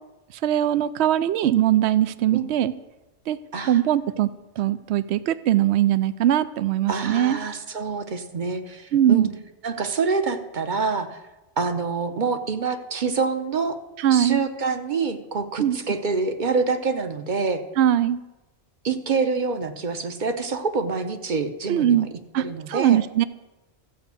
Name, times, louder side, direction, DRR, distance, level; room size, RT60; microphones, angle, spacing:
voice 1, 0.3-2.7 3.3-3.4 3.6-4.3 4.6-7.4 8.9-9.3 14.0-14.4 15.6-15.8 17.8-18.2 21.7-22.1 22.3-23.2, right 11 dB, 75° right, 14 dB, 0.8 m, -21 dB
voice 2, 6.9-9.3 9.6-11.2 11.6-13.8 14.1-17.6 18.8-22.0 22.4-23.0, right 4 dB, 45° right, 8 dB, 0.9 m, -26 dB
14.0 x 5.2 x 8.2 m, 1.0 s
omnidirectional pair, 1.2 m